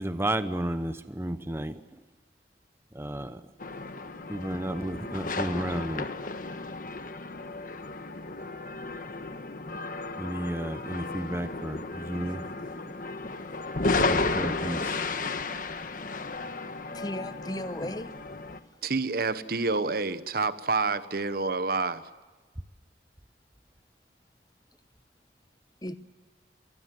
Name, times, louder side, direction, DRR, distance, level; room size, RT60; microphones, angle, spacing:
voice 1, 0.0-1.8 2.9-3.5 4.3-6.1 10.2-12.5 14.0-15.0, right 1 dB, 15° right, 0.8 m, -32 dB
sound 1, 3.6-18.6, left 3 dB, 50° left, 1.4 m, -33 dB
voice 2, 16.9-18.1 25.8-26.0, left 1 dB, 20° left, 1.0 m, -35 dB
voice 3, 18.8-22.0, right 3 dB, 55° right, 1.1 m, -28 dB
26.0 x 20.0 x 7.8 m
head